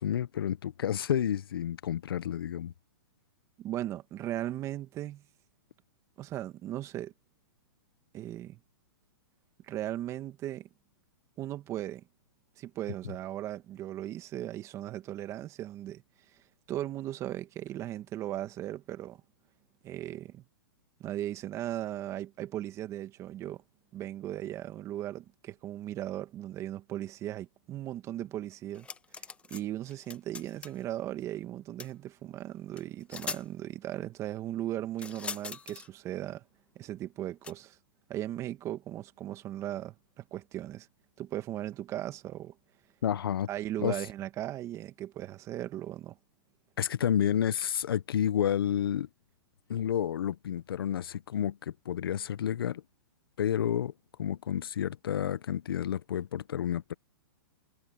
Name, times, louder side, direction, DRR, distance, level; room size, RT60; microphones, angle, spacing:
voice 1, 0.0-2.7 43.0-43.5 43.8-44.0 46.8-49.1 49.7-52.8 53.4-53.9 54.2-56.9, left 9 dB, 75° left, 1.0 m, -30 dB
voice 2, 3.6-5.2 6.2-7.1 8.1-8.6 9.7-10.7 11.4-12.0 12.6-16.0 16.7-19.2 19.8-20.4 21.0-23.6 23.9-28.9 29.5-36.4 36.8-37.8 38.1-40.9 41.2-42.6 43.5-46.2, right 13 dB, 25° right, 2.0 m, -37 dB
sound 1, 28.7-29.6 29.9-30.8 31.8-31.9 32.8-32.9 33.1-33.4 35.0-35.9 37.4-37.5, left 5 dB, 10° left, 1.1 m, -41 dB
hypercardioid pair, 150°, 12 cm